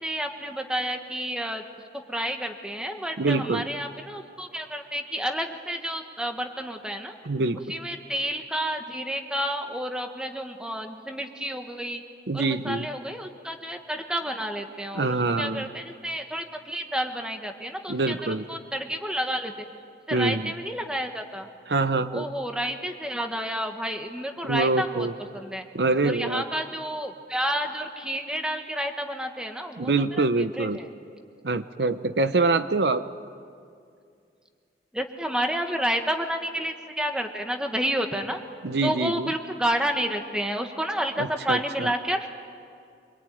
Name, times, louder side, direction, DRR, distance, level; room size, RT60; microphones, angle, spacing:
voice 1, 0.0-1.6 2.1-7.1 7.7-12.0 12.3-19.6 20.1-21.5 22.1-25.1 25.3-25.7 26.0-30.8 34.9-38.4 38.8-42.3, equal, 5° right, 4 dB, 1.6 m, -30 dB
voice 2, 3.2-3.7 7.2-7.6 12.3-12.9 14.9-15.6 17.9-18.5 20.1-20.5 21.7-22.2 24.4-25.1 25.7-26.4 29.8-30.8 31.4-33.0 38.6-39.3 41.2-41.9, right 3 dB, 70° right, 11 dB, 0.8 m, -25 dB
25.5 x 23.0 x 9.3 m, 2.3 s
head